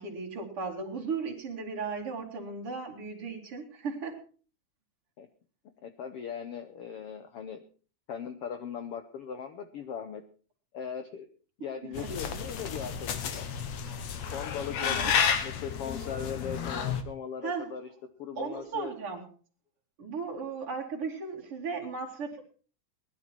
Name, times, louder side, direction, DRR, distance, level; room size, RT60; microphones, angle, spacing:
voice 1, 0.0-4.2 12.0-12.1 14.8-15.1 17.4-17.7 18.4-19.3 20.0-22.4, right 4 dB, 45° right, -1 dB, 3.3 m, -36 dB
voice 2, 5.8-7.6 8.1-10.2 10.7-11.3 11.6-13.5 14.3-17.9 18.2-18.9, left 7 dB, 80° left, 8 dB, 1.3 m, -39 dB
sound 1, 11.9-17.0, left 7 dB, 60° left, 2.2 m, -31 dB
19.5 x 12.0 x 4.5 m, 0.40 s
omnidirectional pair, 3.9 m